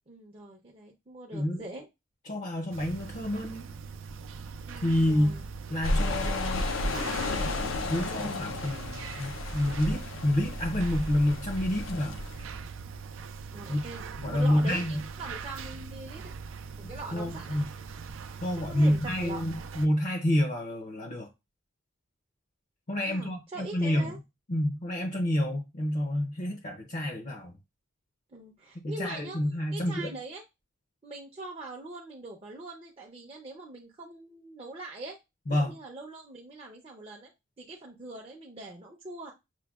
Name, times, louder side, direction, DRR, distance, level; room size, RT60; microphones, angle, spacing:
voice 1, 0.1-1.9 4.7-5.4 13.5-14.0 14.3-16.3 16.9-17.6 18.6-19.4 23.0-24.2 28.3-29.4 29.7-30.4 31.0-35.2 35.5-37.3 37.6-39.3, right 2 dB, 30° right, 0.5 m, -42 dB
voice 2, 2.3-3.7 4.8-5.4 5.7-6.7 7.9-12.2 13.7-13.8 14.2-15.0 17.1-17.7 18.4-21.3 22.9-24.2 24.5-27.5 28.8-30.2 35.5-35.7, left 1 dB, 40° left, 0.6 m, -28 dB
sound 1, 2.7-19.9, right 5 dB, 85° right, 0.4 m, -41 dB
sound 2, 5.8-12.4, left 2 dB, 85° left, 0.5 m, -32 dB
5.9 x 2.1 x 2.3 m
head